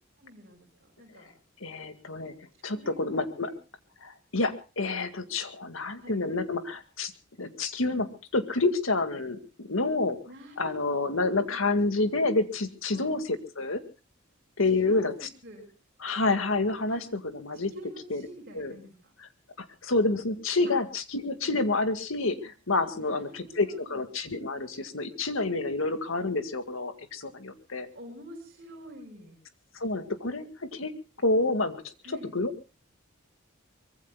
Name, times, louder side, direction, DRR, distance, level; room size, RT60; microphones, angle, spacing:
voice 1, 0.2-1.3 2.6-3.2 3.4-3.6 6.0-6.4 10.3-12.1 12.9-13.1 14.7-15.1 15.4-15.7 16.9-17.0 17.7-19.1 20.7-20.8 22.9-24.0 28.0-29.3 32.0-32.3, equal, 50° right, 0 dB, 5.3 m, -48 dB
voice 2, 1.6-3.5 4.0-7.1 7.4-10.2 10.6-13.8 14.6-15.1 16.0-17.7 18.1-18.2 18.5-18.7 19.6-27.9 29.7-30.9 31.2-31.8 32.3-32.5, left 3 dB, 70° left, 9 dB, 2.0 m, -28 dB
24.0 x 23.5 x 2.3 m, 0.33 s
head